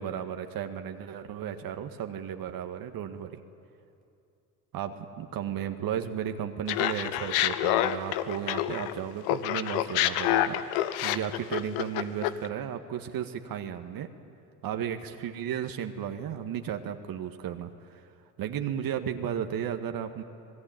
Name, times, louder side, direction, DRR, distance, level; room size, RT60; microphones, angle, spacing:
voice 1, 0.0-3.4 4.7-14.1 14.6-18.0 18.4-20.2, right 9 dB, 60° right, 6 dB, 1.8 m, -34 dB
Laughter, 6.7-9.0 9.3-12.5, left 13 dB, 75° left, 1.2 m, -27 dB
26.0 x 19.5 x 9.1 m, 2.6 s
hypercardioid pair, 65°, 40 cm